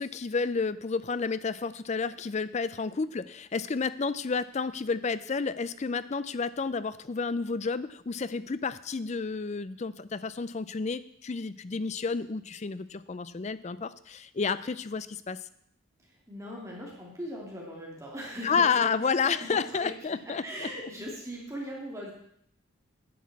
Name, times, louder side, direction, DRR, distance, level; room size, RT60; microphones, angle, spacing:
voice 1, 0.0-15.4 18.4-20.7, left 5 dB, 35° left, 15 dB, 0.4 m, -30 dB
voice 2, 16.0-18.9 19.3-19.9 20.4-22.1, equal, 15° right, -3 dB, 2.5 m, -39 dB
10.0 x 6.3 x 8.5 m, 0.72 s
head